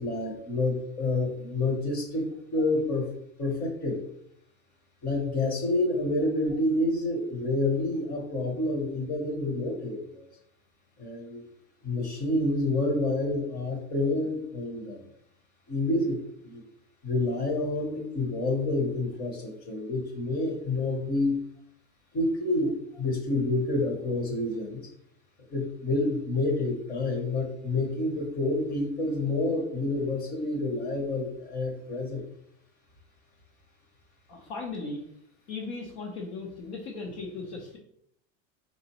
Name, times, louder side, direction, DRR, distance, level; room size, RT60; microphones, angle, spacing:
voice 1, 0.0-3.1 3.4-4.0 5.0-10.2 11.0-11.4 11.8-15.0 15.7-16.2 16.4-16.6 17.0-21.3 22.1-24.8 25.5-32.2, left 2 dB, 25° left, 2 dB, 0.9 m, -28 dB
voice 2, 34.3-35.0 35.5-37.8, left 3 dB, 65° left, -1 dB, 0.9 m, -37 dB
4.1 x 4.0 x 3.0 m, 0.71 s
supercardioid pair, 170°, 36 cm